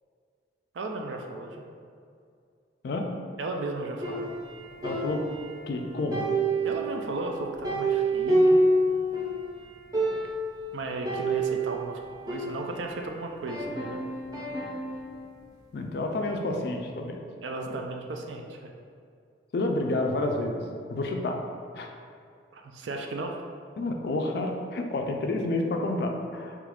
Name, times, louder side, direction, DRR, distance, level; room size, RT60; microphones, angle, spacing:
voice 1, 0.7-1.7 3.4-4.3 6.6-8.6 10.7-12.0 12.3-14.0 17.4-18.7 22.5-23.4, right 2 dB, 75° right, 2 dB, 0.4 m, -35 dB
sound 1, 4.0-5.8 6.1-9.4 9.7-9.8 9.9-10.5 11.0-13.0 13.5-15.1, right 1 dB, 20° right, 0.6 m, -28 dB
voice 2, 4.8-5.2 5.7-6.3 15.7-17.2 17.7-17.8 19.5-20.6 20.9-21.4 21.7-21.9 23.8-26.6, left 2 dB, 55° left, 3 dB, 0.3 m, -29 dB
3.0 x 2.4 x 3.4 m, 2.3 s
head